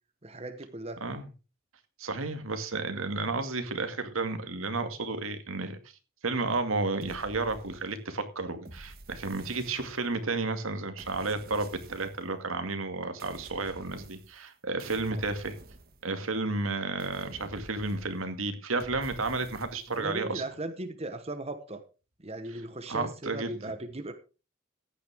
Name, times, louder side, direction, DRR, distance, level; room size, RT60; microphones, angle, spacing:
voice 1, 0.2-1.0 15.1-15.2 20.0-21.8 22.2-24.1, right 2 dB, 30° right, 1.2 m, -37 dB
voice 2, 2.0-5.8 6.2-15.6 16.0-20.4 22.9-23.6, right 3 dB, 85° right, 2.2 m, -32 dB
sound 1, 7.0-8.1 8.6-10.3 11.0-12.3 13.2-14.5 14.8-16.4 17.0-18.4 18.8-20.1, right 2 dB, 45° right, 1.6 m, -50 dB
15.0 x 10.5 x 3.6 m
head